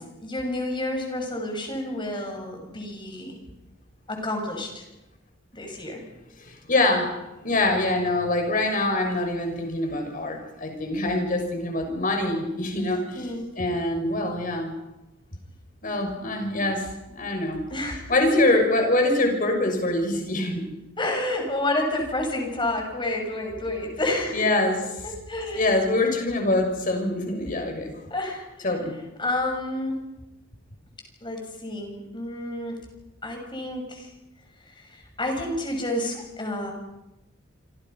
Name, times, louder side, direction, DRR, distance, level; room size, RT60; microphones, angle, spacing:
voice 1, 0.2-3.4 4.1-4.8 5.5-6.0 13.1-13.5 17.7-18.0 21.0-24.4 25.0-25.7 28.1-28.4 29.2-30.0 31.2-32.8 33.2-34.1 35.2-36.7, left 1 dB, 25° left, 3 dB, 6.5 m, -29 dB
voice 2, 6.4-7.1 7.4-13.3 13.6-14.7 15.8-17.6 18.1-20.6 24.3-24.8 25.5-28.0 28.6-28.9, left 2 dB, 45° left, 3 dB, 6.3 m, -24 dB
27.5 x 26.5 x 5.7 m, 0.95 s
head